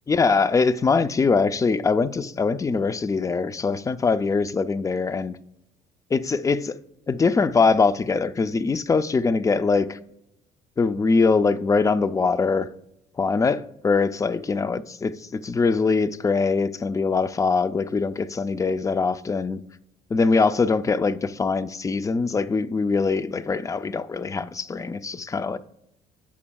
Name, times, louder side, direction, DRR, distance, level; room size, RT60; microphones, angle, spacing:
voice 1, 0.1-5.4 6.1-6.8 7.1-10.0 10.8-12.7 13.2-19.6 20.1-25.6, left 4 dB, 20° left, 0.4 m, -22 dB
15.5 x 6.1 x 2.3 m
cardioid pair, 110°, 17 cm